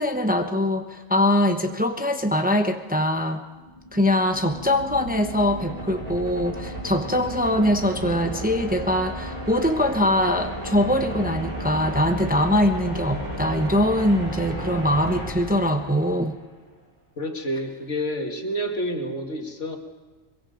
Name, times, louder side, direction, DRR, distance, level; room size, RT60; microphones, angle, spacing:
voice 1, 0.0-3.4 3.9-16.3, left 1 dB, 10° right, 5 dB, 0.9 m, -22 dB
sound 1, 3.5-16.5, equal, 35° right, 4.8 m, -34 dB
sound 2, 4.2-10.7, right 6 dB, 85° right, 1.2 m, -42 dB
voice 2, 17.2-19.8, equal, 75° left, 3 dB, 2.4 m, -29 dB
23.0 x 22.5 x 5.1 m, 1.3 s
omnidirectional pair, 1.2 m